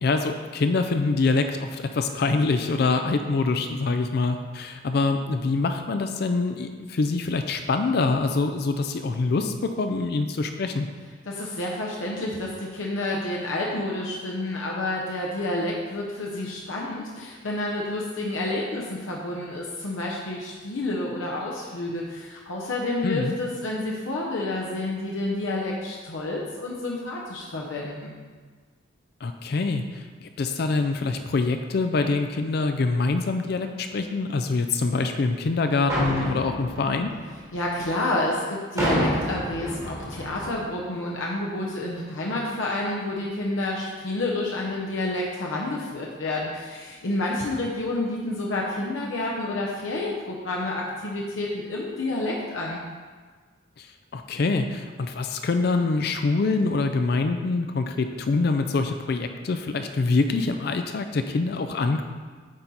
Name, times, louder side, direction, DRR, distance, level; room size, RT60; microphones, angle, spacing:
voice 1, 0.0-10.9 23.0-23.4 29.2-37.1 53.8-53.9 54.1-62.0, left 3 dB, 55° left, 6 dB, 0.4 m, -25 dB
voice 2, 11.3-28.1 37.5-52.8, left 2 dB, 85° left, -3 dB, 0.8 m, -29 dB
sound 1, 35.9-37.9 38.8-40.7, equal, 15° right, 1.2 m, -29 dB
8.7 x 3.9 x 4.2 m, 1.5 s
head